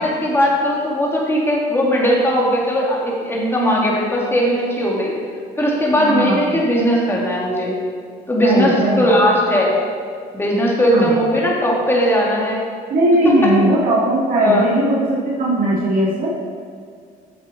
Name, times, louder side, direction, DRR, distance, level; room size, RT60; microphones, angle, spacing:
voice 1, 0.0-5.1 5.6-7.7 8.3-9.7 10.3-12.6 14.3-14.7, equal, 15° left, -3 dB, 2.0 m, -18 dB
voice 2, 5.9-6.6 8.4-9.1 10.9-11.1 12.9-16.3, right 1 dB, 55° right, -6 dB, 1.8 m, -18 dB
8.6 x 7.2 x 4.2 m, 2.2 s
cardioid pair, 110°, 17 cm